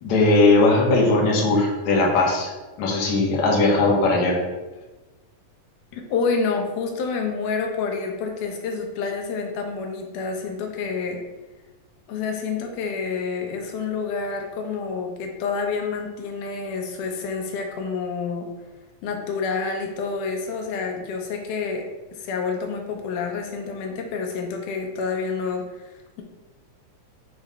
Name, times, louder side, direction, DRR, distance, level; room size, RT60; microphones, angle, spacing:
voice 1, 0.0-2.5 2.8-4.4, left 2 dB, 70° left, -2 dB, 2.4 m, -19 dB
voice 2, 5.9-11.2 12.1-18.5 19.0-26.2, left 5 dB, 90° left, 2 dB, 2.3 m, -28 dB
9.3 x 4.3 x 2.4 m, 1.2 s
omnidirectional pair, 3.6 m